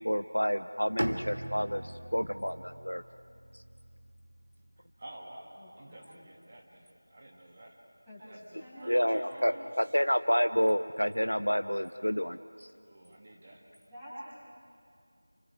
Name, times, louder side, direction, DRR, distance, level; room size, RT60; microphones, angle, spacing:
voice 1, 0.0-3.0 8.9-12.7, equal, 85° left, 10 dB, 0.8 m, -29 dB
Bowed string instrument, 1.0-4.9, equal, 75° right, 1.7 m, -40 dB
voice 2, 4.8-7.8 8.2-9.9 12.8-13.6, right 1 dB, 25° right, -1 dB, 1.8 m, -51 dB
voice 3, 5.6-6.2 8.1-9.7 13.9-14.3, equal, 5° right, -15 dB, 6.9 m, -48 dB
29.5 x 29.0 x 4.7 m, 2.4 s
figure-of-eight pair, 175°, 0 cm